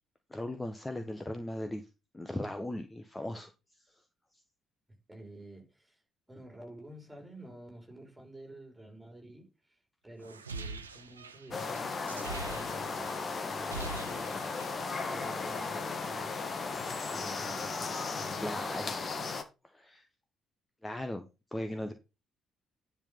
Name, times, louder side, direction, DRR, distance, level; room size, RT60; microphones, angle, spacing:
voice 1, 0.3-1.8 2.1-3.5 18.4-19.0 19.6-20.1 20.8-21.9, left 1 dB, 15° left, 1.4 m, -38 dB
voice 2, 5.1-6.0 6.3-9.8 10.0-14.6 15.0-16.6 17.1-19.0, right 2 dB, 10° right, 5.2 m, -50 dB
sound 1, 10.2-13.2 13.5-14.8, right 4 dB, 85° right, 0.6 m, -43 dB
sound 2, 11.5-19.4, left 4 dB, 40° left, 1.7 m, -36 dB
10.5 x 5.7 x 5.6 m
figure-of-eight pair, 45°, 0 cm